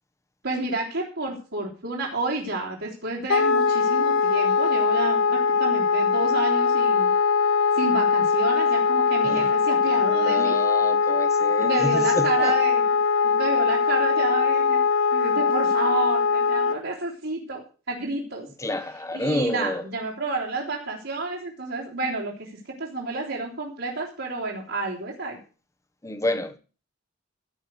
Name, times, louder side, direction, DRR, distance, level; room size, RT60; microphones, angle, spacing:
voice 1, 0.4-7.1 7.8-10.6 11.6-12.8 13.2-14.8 15.1-18.5 19.1-22.5 22.8-25.4, right 2 dB, 70° right, 3.5 m, -30 dB
Wind instrument woodwind instrument, 3.3-16.8, left 5 dB, 80° left, 0.7 m, -21 dB
voice 2, 10.1-12.5 18.6-19.8 26.0-26.6, left 1 dB, 15° left, 1.0 m, -29 dB
16.0 x 5.5 x 8.0 m
head